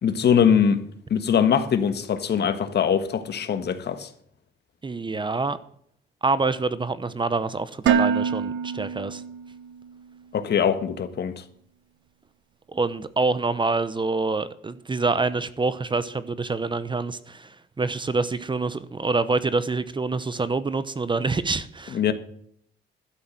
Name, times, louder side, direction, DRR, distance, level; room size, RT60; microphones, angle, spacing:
voice 1, 0.0-0.8 1.1-4.1 10.3-11.3 21.9-22.1, left 7 dB, 55° left, 1.5 m, -22 dB
voice 2, 4.8-5.6 6.2-9.2 12.7-22.1, right 3 dB, 25° right, 0.8 m, -26 dB
Dishes pots and pans, 7.9-9.9, right 8 dB, 70° right, 0.7 m, -25 dB
12.5 x 7.8 x 7.7 m
cardioid pair, 90°, 20 cm